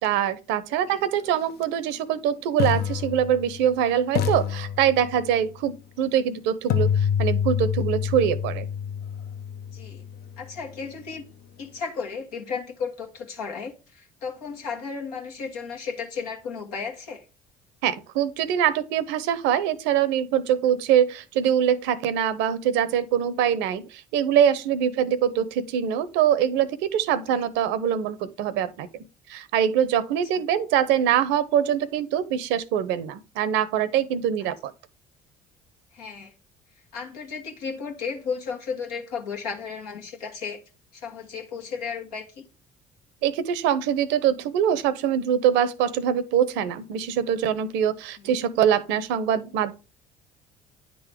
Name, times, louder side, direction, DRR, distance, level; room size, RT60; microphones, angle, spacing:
voice 1, 0.0-8.7 17.8-34.7 43.2-49.7, right 9 dB, 75° right, 0.7 m, -24 dB
sound 1, 1.5-1.6 2.6-3.8 4.1-5.4 6.7-10.6, left 8 dB, 60° left, 0.6 m, -27 dB
voice 2, 9.7-10.0 10.4-11.2 11.6-17.2 25.0-25.1 27.3-27.4 35.9-36.3 36.9-40.6 40.9-42.5 48.2-48.3, left 5 dB, 85° left, 1.5 m, -34 dB
9.6 x 3.8 x 3.4 m
hypercardioid pair, 60°, 19 cm